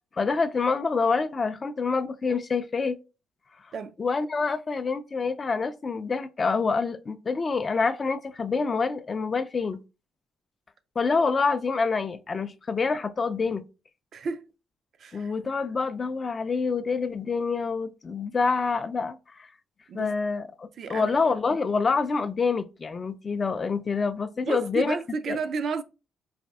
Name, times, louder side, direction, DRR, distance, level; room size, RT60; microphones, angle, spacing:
voice 1, 0.2-3.0 4.0-9.8 11.0-13.6 15.1-19.5 19.9-25.0 25.3-25.4, left 4 dB, 35° left, 0.3 m, -27 dB
voice 2, 14.1-14.5 15.0-15.3 19.9-20.1 20.8-21.1 24.4-25.8, right 5 dB, 60° right, 0.3 m, -32 dB
4.1 x 2.6 x 2.3 m
cardioid pair, 90°, 0 cm